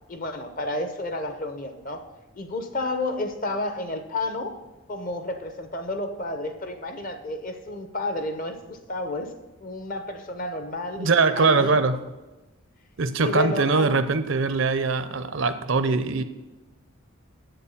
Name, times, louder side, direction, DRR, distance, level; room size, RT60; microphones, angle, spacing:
voice 1, 0.1-2.1 2.3-4.6 4.9-9.3 9.6-11.1 11.3-11.8 13.2-13.9, left 2 dB, 40° left, 7 dB, 0.8 m, -31 dB
voice 2, 11.0-12.0 13.0-16.2, right 4 dB, 60° right, 11 dB, 0.6 m, -22 dB
7.7 x 7.0 x 7.1 m, 1.1 s
head